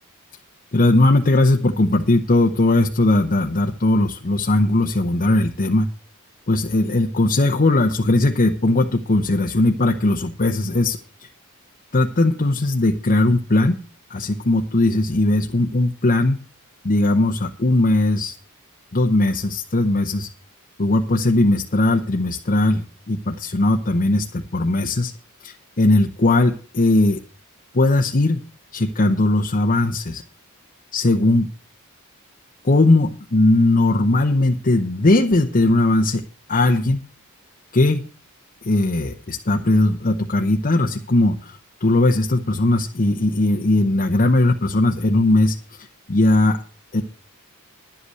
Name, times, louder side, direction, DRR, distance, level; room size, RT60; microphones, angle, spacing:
voice 1, 0.7-5.9 6.5-11.0 11.9-13.8 14.1-16.4 16.8-18.3 18.9-20.3 20.8-25.1 25.4-27.2 27.7-28.4 28.7-30.2 30.9-31.5 32.6-36.2 36.5-37.0 37.7-38.0 38.6-46.6 46.9-47.0, left 2 dB, 40° left, 3 dB, 0.9 m, -19 dB
11.5 x 8.3 x 6.5 m, 0.37 s
head